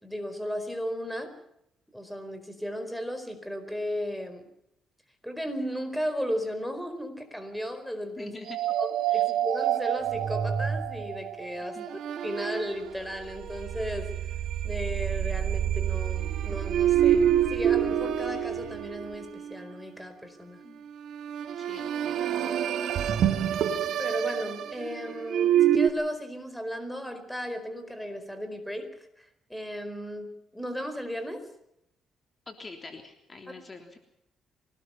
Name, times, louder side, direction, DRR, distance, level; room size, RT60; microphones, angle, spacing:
voice 1, 0.0-1.3 1.9-4.5 5.2-8.4 8.8-14.3 14.6-20.6 24.0-31.5, equal, ahead, 8 dB, 4.6 m, -35 dB
voice 2, 8.2-8.6 9.1-9.2 11.6-11.9 20.6-20.8 21.6-22.4 32.5-34.0, left 3 dB, 30° left, 4 dB, 3.4 m, -45 dB
sound 1, 8.5-19.6 21.1-25.9, right 10 dB, 70° right, 2.1 m, -27 dB
24.5 x 19.5 x 5.7 m, 0.79 s
cardioid pair, 90°, 0 cm